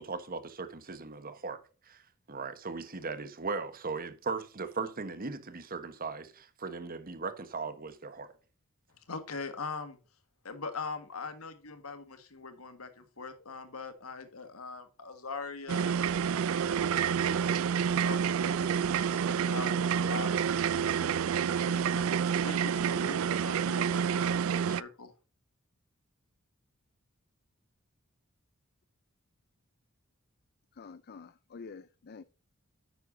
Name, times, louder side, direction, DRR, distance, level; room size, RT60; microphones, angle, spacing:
voice 1, 0.0-1.6 1.9-2.0 2.3-8.3, right 4 dB, 45° right, 1.2 m, -38 dB
voice 2, 9.0-10.0 10.4-25.1, left 4 dB, 90° left, 1.7 m, -42 dB
sound 1, 15.7-24.8, right 7 dB, 70° right, 0.4 m, -28 dB
voice 3, 30.7-32.2, left 5 dB, 50° left, 0.5 m, -48 dB
10.0 x 9.2 x 2.7 m
head